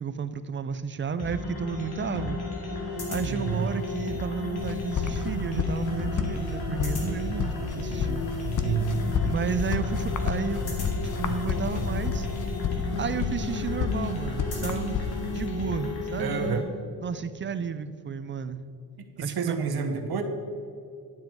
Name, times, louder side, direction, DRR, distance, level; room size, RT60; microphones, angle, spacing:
voice 1, 0.0-2.4 3.1-8.2 9.2-10.7 11.0-12.3 13.0-15.0 15.3-16.4 17.0-18.6 19.2-19.6, right 6 dB, 30° right, 12 dB, 0.4 m, -32 dB
sound 1, 1.2-16.6, left 2 dB, 70° left, 2.4 m, -33 dB
voice 2, 3.3-3.6 8.6-8.9 16.2-16.7 19.2-20.2, right 6 dB, 65° right, 5 dB, 1.1 m, -28 dB
sound 2, 4.6-15.5, left 5 dB, 50° left, 0.8 m, -31 dB
11.0 x 7.5 x 4.6 m, 2.5 s
cardioid pair, 130°, 39 cm